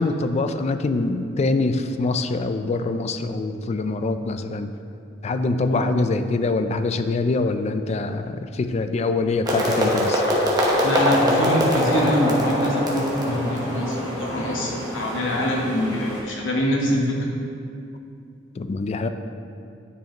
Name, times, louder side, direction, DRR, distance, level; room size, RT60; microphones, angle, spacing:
voice 1, 0.0-4.7 5.2-10.2 18.6-19.1, left 3 dB, 35° left, 9 dB, 0.3 m, -24 dB
sound 1, 9.4-15.4, equal, 20° right, 1.0 m, -23 dB
sound 2, 10.7-16.2, equal, 20° left, 1.5 m, -35 dB
voice 2, 10.8-17.4, equal, 80° left, -3 dB, 1.3 m, -24 dB
9.7 x 5.1 x 2.9 m, 2.5 s
head